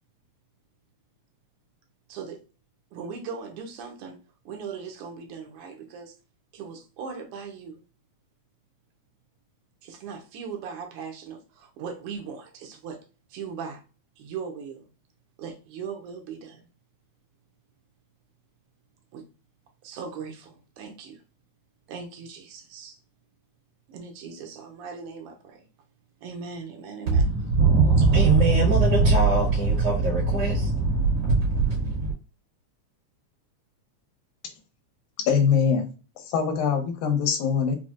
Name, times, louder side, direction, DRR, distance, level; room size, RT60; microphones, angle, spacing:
voice 1, 2.1-2.4 2.9-4.2 4.4-6.1 6.5-7.8 9.8-13.0 13.3-13.8 14.2-14.9 15.4-16.7 19.1-19.3 19.8-21.2 21.9-23.0 23.9-25.6 26.2-27.3, right 6 dB, 85° right, 1.3 m, -39 dB
voice 2, 27.1-32.1, right 3 dB, 55° right, 2.2 m, -20 dB
voice 3, 35.3-35.9 36.3-37.8, left 6 dB, 85° left, 2.1 m, -22 dB
5.3 x 2.1 x 2.4 m
omnidirectional pair, 3.4 m